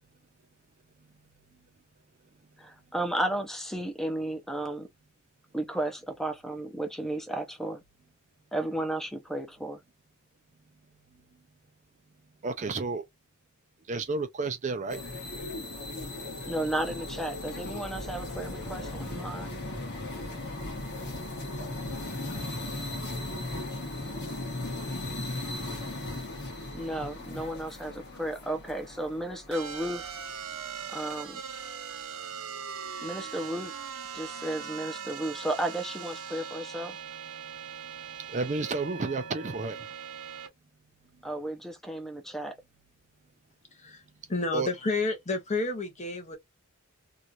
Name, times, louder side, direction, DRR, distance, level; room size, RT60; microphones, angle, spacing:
voice 1, 2.6-4.9 5.5-7.8 8.5-9.8 16.5-19.6 26.7-30.2 30.9-31.4 33.0-33.7 34.1-37.0 41.2-42.5, right 1 dB, ahead, 0.7 m, -33 dB
voice 2, 12.4-13.0 13.9-15.0 38.3-39.8 44.5-44.7, right 3 dB, 35° right, 0.4 m, -31 dB
sound 1, 14.9-30.2, left 2 dB, 50° left, 1.2 m, -37 dB
sound 2, 29.5-40.5, right 7 dB, 75° right, 0.9 m, -40 dB
voice 3, 43.7-44.0 44.3-46.4, left 3 dB, 30° left, 0.9 m, -30 dB
3.0 x 2.5 x 2.4 m
head